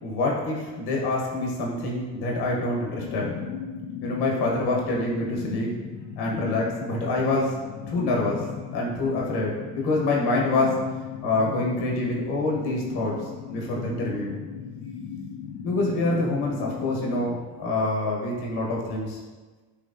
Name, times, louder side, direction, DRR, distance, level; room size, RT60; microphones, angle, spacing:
voice 1, 0.0-3.4 4.0-5.7 6.2-7.6 7.9-8.5 8.7-10.8 11.2-14.4 15.6-19.2, left 2 dB, 85° left, -2 dB, 1.1 m, -26 dB
sound 1, 3.0-17.3, left 7 dB, 70° left, 0.6 m, -37 dB
5.6 x 3.2 x 2.5 m, 1.3 s
cardioid pair, 120°, 39 cm